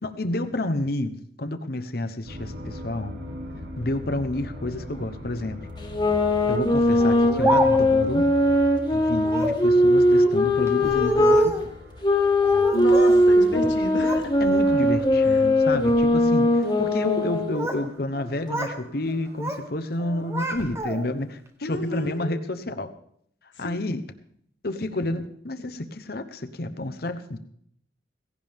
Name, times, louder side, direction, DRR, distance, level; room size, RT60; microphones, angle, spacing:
voice 1, 0.0-3.1 3.8-5.6 6.5-8.3 8.9-11.5 14.4-22.9 23.6-24.0 24.6-27.4, left 2 dB, 55° left, 9 dB, 0.9 m, -29 dB
sound 1, 2.2-21.1, left 1 dB, 65° right, 3.3 m, -41 dB
sound 2, 5.8-11.5 12.0-17.6, left 1 dB, 20° left, 1.6 m, -20 dB
Speech, 7.0-8.1 9.2-9.7 10.7-11.7 12.4-13.2 13.5-14.3 14.7-15.0 15.7-16.0 17.2-17.9 18.2-18.8 19.1-19.7 20.0-21.2, right 1 dB, 15° right, 1.1 m, -30 dB
voice 2, 12.7-14.3 15.2-15.5 21.6-22.3 23.5-23.8, left 1 dB, 75° left, 4 dB, 1.9 m, -31 dB
17.0 x 16.0 x 3.6 m, 0.67 s
head